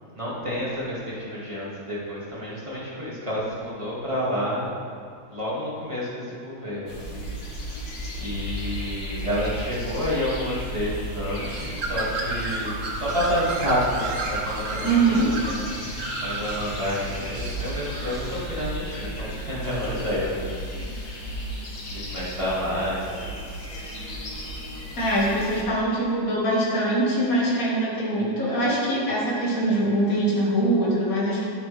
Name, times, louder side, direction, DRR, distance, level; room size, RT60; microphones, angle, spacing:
voice 1, 0.1-4.7 5.3-7.3 7.5-15.9 16.2-21.5 21.9-23.4, equal, 15° right, -8 dB, 2.3 m, -30 dB
sound 1, 6.9-25.6, equal, 75° left, 2.3 m, -35 dB
Bird, 11.3-18.8, right 3 dB, 50° right, 1.2 m, -33 dB
voice 2, 14.8-15.3 25.0-31.4, right 1 dB, 45° left, -6 dB, 2.4 m, -23 dB
11.0 x 8.7 x 3.4 m, 2.3 s
omnidirectional pair, 2.1 m